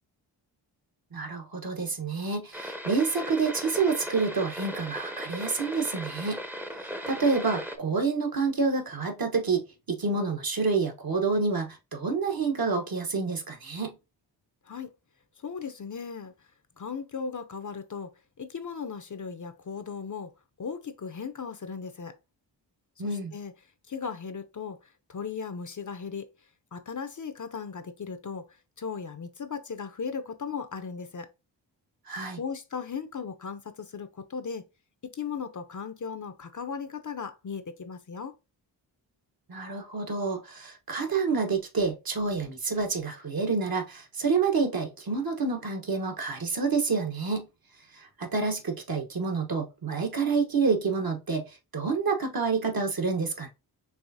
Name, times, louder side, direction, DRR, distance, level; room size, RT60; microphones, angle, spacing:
voice 1, 1.1-6.4 7.1-14.0 23.0-23.3 32.1-32.4 39.5-47.5 47.9-53.5, right 4 dB, 50° right, 1.2 m, -28 dB
sound 1, 2.5-7.8, equal, 5° right, 0.8 m, -37 dB
voice 2, 15.4-16.3 16.8-18.1 18.4-20.3 20.6-22.2 23.0-23.5 23.9-26.3 26.7-28.4 28.8-31.3 32.4-34.6 35.1-38.3, left 6 dB, 40° left, 0.7 m, -37 dB
4.8 x 3.2 x 2.7 m
supercardioid pair, 40°, 47 cm